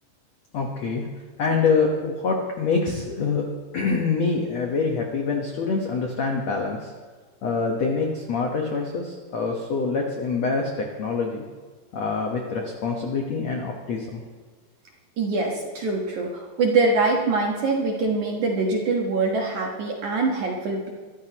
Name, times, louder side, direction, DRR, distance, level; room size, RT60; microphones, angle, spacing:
voice 1, 0.5-1.1 1.4-3.5 3.7-6.9 7.4-11.4 11.9-14.2, left 4 dB, 75° left, 0 dB, 1.5 m, -25 dB
voice 2, 15.2-20.9, right 3 dB, 60° right, -1 dB, 2.2 m, -24 dB
23.5 x 14.0 x 3.0 m, 1.5 s
omnidirectional pair, 5.1 m